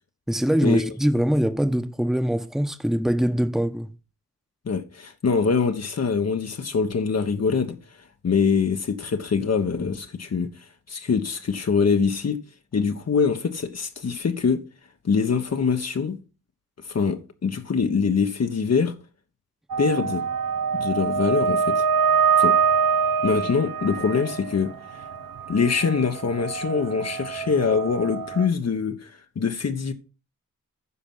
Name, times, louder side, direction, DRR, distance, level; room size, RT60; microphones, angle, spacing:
voice 1, 0.3-3.9, equal, ahead, 1.2 m, -23 dB
voice 2, 4.6-7.8 8.2-12.4 12.7-14.6 15.0-16.2 16.8-18.9 19.8-20.2 20.7-21.8 22.4-22.6 23.2-25.0 25.5-29.9, left 5 dB, 50° left, 1.3 m, -24 dB
sound 1, 19.7-28.5, right 6 dB, 80° right, 1.2 m, -25 dB
10.0 x 5.9 x 5.7 m
cardioid pair, 80°, 33 cm